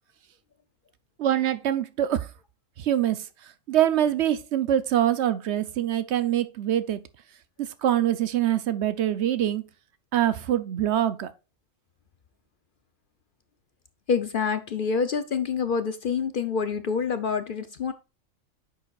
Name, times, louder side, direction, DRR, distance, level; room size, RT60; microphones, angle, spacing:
voice 1, 1.2-2.3 2.8-3.2 3.7-7.0 7.6-9.6 10.1-11.3, right 11 dB, 65° right, 0.8 m, -24 dB
voice 2, 14.1-17.9, left 6 dB, 55° left, 0.6 m, -27 dB
9.8 x 7.0 x 2.4 m
omnidirectional pair, 1.3 m